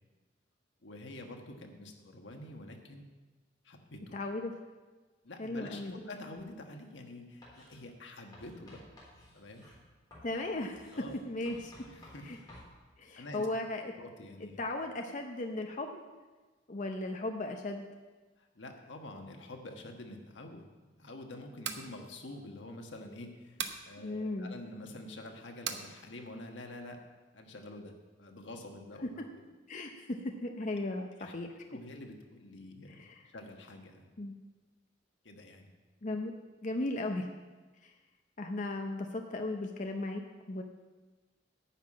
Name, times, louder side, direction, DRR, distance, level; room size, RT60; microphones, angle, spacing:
voice 1, 0.8-3.1 3.6-4.2 5.2-8.8 9.3-9.7 10.9-11.2 11.9-12.3 13.2-13.5 14.0-14.6 18.4-20.7 21.0-27.0 27.3-27.9 28.2-29.4 31.2-31.3 31.7-33.0 33.3-34.1 35.2-35.7, left 1 dB, 85° left, 3 dB, 1.4 m, -47 dB
voice 2, 4.1-4.5 5.4-5.9 10.2-10.9 11.3-11.7 12.2-12.4 13.0-13.9 14.4-16.0 16.7-17.9 24.0-24.6 29.0-29.1 29.7-31.5 32.9-33.2 34.2-34.3 36.0-36.3 36.6-37.3 37.8-37.9 38.4-40.6, left 2 dB, 45° left, 3 dB, 0.7 m, -36 dB
Writing, 7.4-7.8 8.3-12.7, left 1 dB, 25° left, 3.7 m, -55 dB
sound 1, 21.4-21.9 23.6-23.8 25.6-25.9, right 7 dB, 75° right, 0.9 m, -37 dB
10.0 x 5.7 x 8.5 m, 1.3 s
head